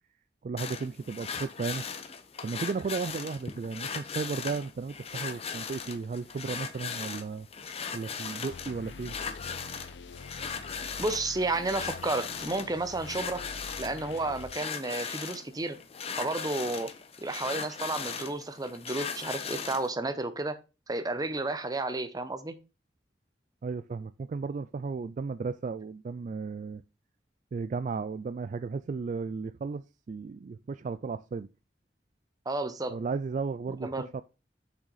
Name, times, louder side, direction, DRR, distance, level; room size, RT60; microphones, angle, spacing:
voice 1, 0.4-1.8 2.4-7.5 7.9-9.2 23.6-26.8 27.5-31.5 32.9-33.9 34.1-34.2, right 4 dB, 45° right, 0.3 m, -34 dB
sound 1, 0.6-19.9, left 6 dB, 35° left, 0.7 m, -38 dB
sound 2, 8.5-14.5, left 4 dB, 90° left, 0.6 m, -46 dB
voice 2, 11.0-13.4 13.8-15.8 16.2-16.9 17.2-20.6 20.9-22.6 32.5-33.0 33.8-34.1, right 2 dB, 20° right, 0.8 m, -32 dB
6.3 x 6.2 x 4.0 m
head